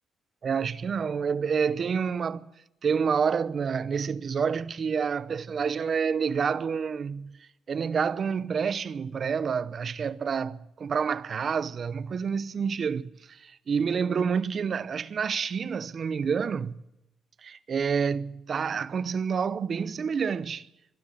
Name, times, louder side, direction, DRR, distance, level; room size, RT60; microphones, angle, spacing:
voice 1, 0.4-2.5 2.8-7.4 7.7-16.8 17.4-20.7, right 6 dB, 50° right, 0.7 m, -28 dB
22.5 x 12.5 x 9.9 m
cardioid pair, 90°, 0 cm